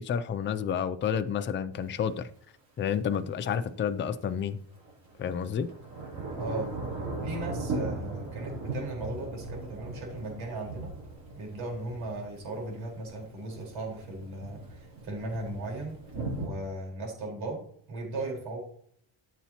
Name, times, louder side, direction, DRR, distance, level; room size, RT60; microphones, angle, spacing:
voice 1, 0.0-2.3 2.8-4.6 5.2-5.7, left 8 dB, 25° left, 10 dB, 0.4 m, -30 dB
Thunder / Rain, 1.7-1.8 4.8-16.5, right 2 dB, 35° right, 3.1 m, -38 dB
voice 2, 6.4-6.7 7.2-10.9 11.3-16.0 16.4-18.6, right 2 dB, 80° right, 0 dB, 4.5 m, -37 dB
13.5 x 7.1 x 2.9 m, 0.63 s
cardioid pair, 175°, 47 cm